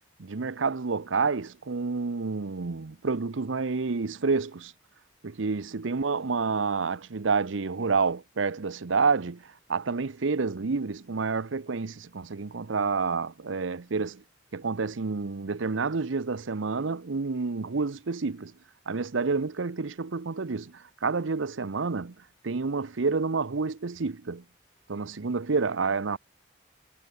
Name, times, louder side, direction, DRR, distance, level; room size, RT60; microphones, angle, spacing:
voice 1, 0.2-4.7 5.2-14.2 14.5-18.5 18.9-22.1 22.4-24.4 24.9-26.2, right 4 dB, 90° right, 0.7 m, -29 dB
head